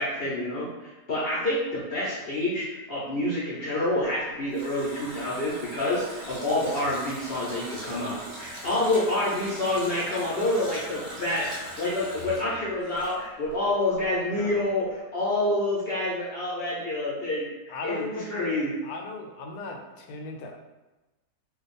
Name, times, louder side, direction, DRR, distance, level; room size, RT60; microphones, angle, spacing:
voice 1, 0.0-18.0 18.3-18.7, left 1 dB, 55° left, -7 dB, 0.7 m, -28 dB
Water tap faucet, 4.0-13.7 13.9-14.1, right 1 dB, 50° right, 0.6 m, -41 dB
voice 2, 14.3-14.7 17.7-20.6, left 3 dB, 75° left, 2 dB, 1.0 m, -37 dB
2.5 x 2.3 x 4.0 m, 1.1 s
omnidirectional pair, 1.7 m